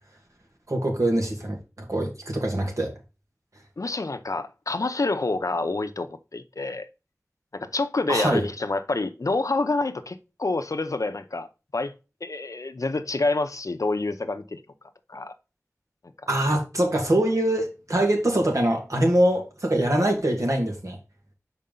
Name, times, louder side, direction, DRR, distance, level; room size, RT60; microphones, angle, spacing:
voice 1, 0.7-2.9 8.1-8.5 16.3-21.0, right 1 dB, 70° right, 1.9 m, -23 dB
voice 2, 3.8-6.9 7.5-11.5 11.7-11.9 12.2-14.6 15.1-15.3, left 3 dB, 80° left, 0.6 m, -27 dB
5.4 x 4.7 x 3.7 m
wide cardioid pair, 40°, 6 cm